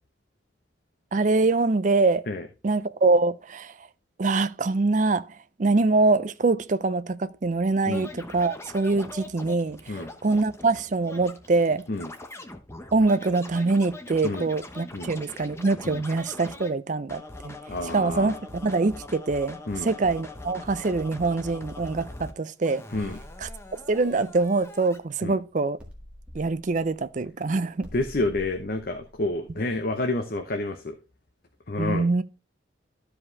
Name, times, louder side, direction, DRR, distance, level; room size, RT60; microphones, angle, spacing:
voice 1, 1.1-2.3 2.6-3.7 4.2-11.8 12.9-17.6 17.9-18.4 18.6-19.6 19.8-22.8 23.4-23.5 23.9-25.8 26.3-27.9 31.8-32.2, right 3 dB, 40° right, 0.4 m, -24 dB
Scratching (performance technique), 7.9-16.7 17.1-22.3 22.6-25.0, left 2 dB, 15° left, 0.9 m, -42 dB
voice 2, 17.7-18.4 19.7-19.9 22.9-23.2 25.2-25.4 27.9-31.0 31.7-32.1, left 2 dB, 50° left, 0.7 m, -29 dB
sound 1, 22.9-25.3 25.8-30.4, equal, 5° right, 1.7 m, -47 dB
13.0 x 4.9 x 3.2 m
head